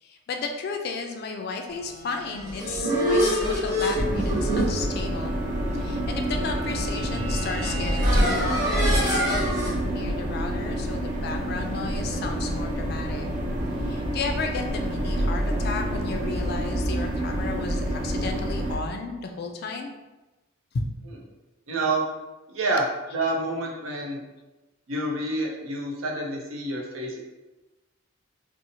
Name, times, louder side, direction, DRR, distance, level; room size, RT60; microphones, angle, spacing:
voice 1, 0.0-5.4 5.7-13.3 13.8-19.9 20.7-20.9, left 4 dB, 50° left, 4 dB, 0.3 m, -33 dB
sound 1, 2.2-9.7, equal, 20° right, 1.0 m, -26 dB
sound 2, 3.9-18.8, right 1 dB, 40° right, 0.4 m, -28 dB
voice 2, 21.7-22.0 22.5-22.9 23.1-24.2 24.9-27.2, right 2 dB, 90° right, -1 dB, 0.6 m, -28 dB
2.7 x 2.0 x 2.8 m, 1.1 s
head